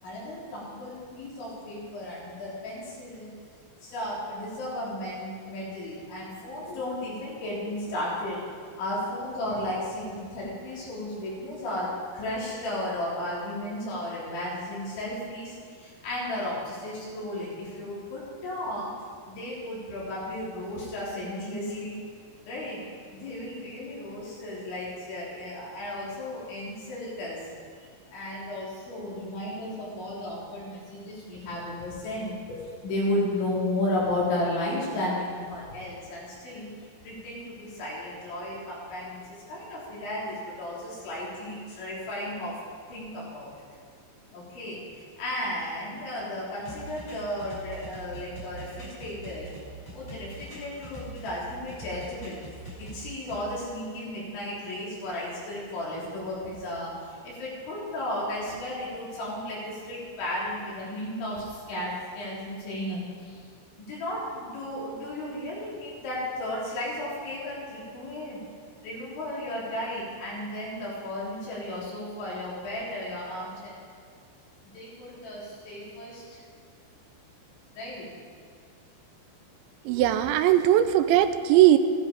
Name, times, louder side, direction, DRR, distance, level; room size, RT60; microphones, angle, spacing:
voice 1, 0.0-3.3 3.8-8.4 8.8-18.9 19.3-22.0 22.4-22.8 23.1-27.4 28.1-36.7 37.0-42.5 42.9-43.5 44.3-49.5 49.9-52.4 52.8-63.4 63.8-68.4 68.8-73.8 74.6-76.4 77.8-78.1, left 1 dB, 75° left, -6 dB, 6.0 m, -34 dB
sound 1, 46.6-51.4 51.7-53.4, right 2 dB, 15° left, 4.1 m, -43 dB
voice 2, 79.9-81.8, right 12 dB, 85° right, 9 dB, 2.8 m, -19 dB
14.5 x 12.5 x 5.1 m, 2.1 s
omnidirectional pair, 5.4 m